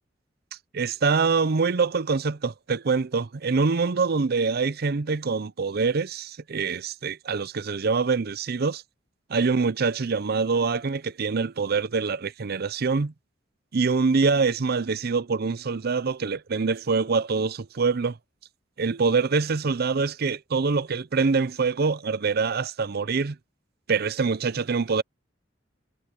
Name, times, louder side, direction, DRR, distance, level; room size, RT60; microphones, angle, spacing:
voice 1, 0.7-8.8 9.3-13.1 13.7-18.2 18.8-23.4 23.9-25.0, right 4 dB, 55° right, 0.6 m, -25 dB
head